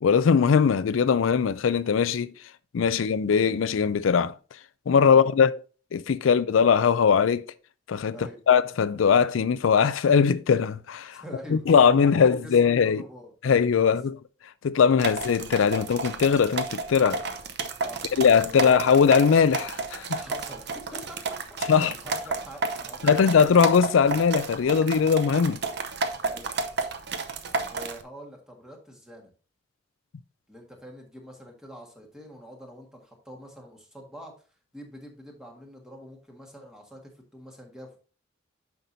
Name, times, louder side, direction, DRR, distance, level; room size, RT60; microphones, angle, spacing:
voice 1, 0.0-2.3 2.7-4.3 4.9-5.5 5.9-7.5 7.9-11.2 11.5-13.0 13.4-14.1 14.6-17.2 18.2-20.2 21.7-21.9 23.0-25.6, left 6 dB, 85° left, 0.4 m, -20 dB
voice 2, 11.1-11.6 11.9-13.3 17.8-18.1 18.4-18.9 20.1-21.4 21.7-23.4 26.2-26.5 27.7-29.3 30.5-34.3 34.7-38.0, equal, 5° right, 1.7 m, -45 dB
sound 1, 15.0-28.0, right 3 dB, 60° right, 0.8 m, -31 dB
9.1 x 5.9 x 2.7 m
head